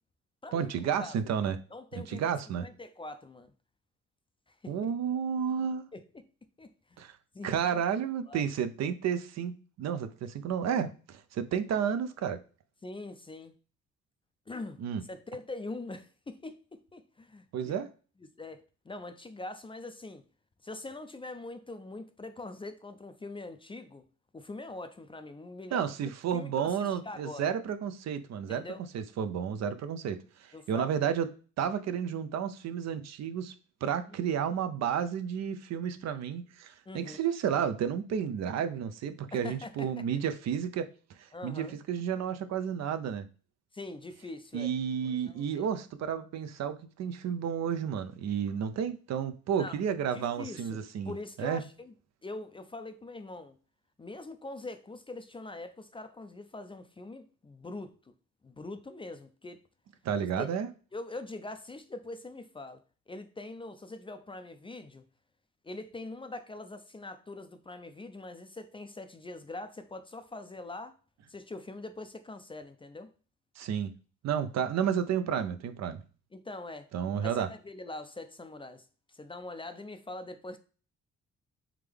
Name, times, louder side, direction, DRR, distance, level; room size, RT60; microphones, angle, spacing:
voice 1, 0.5-1.6 2.1-2.7 4.7-5.9 7.0-7.2 7.4-9.5 9.8-12.4 14.8-15.0 17.5-17.9 25.7-28.6 28.9-31.3 31.6-33.5 33.8-40.9 41.2-43.3 44.5-51.1 51.4-51.6 60.0-60.7 73.6-74.0 74.2-76.0 76.9-77.5, right 8 dB, 60° right, 0.5 m, -31 dB
voice 2, 1.7-2.2 2.6-3.5 4.6-4.9 5.9-6.0 6.6-7.0 7.3-7.8 8.3-8.4 12.8-13.5 14.5-14.8 15.1-17.8 18.4-20.2 20.6-24.0 24.3-27.5 28.5-28.8 30.5-30.9 34.1-34.2 36.9-37.2 39.3-39.9 41.3-41.8 43.7-44.7 45.3-45.6 49.5-49.8 50.1-51.9 52.2-53.6 54.0-58.1 58.4-59.6 60.2-60.5 60.9-65.0 65.6-71.0 71.3-73.1 76.3-76.9 77.2-80.6, left 2 dB, 20° left, 0.4 m, -43 dB
3.6 x 3.4 x 3.3 m
cardioid pair, 90°, 30 cm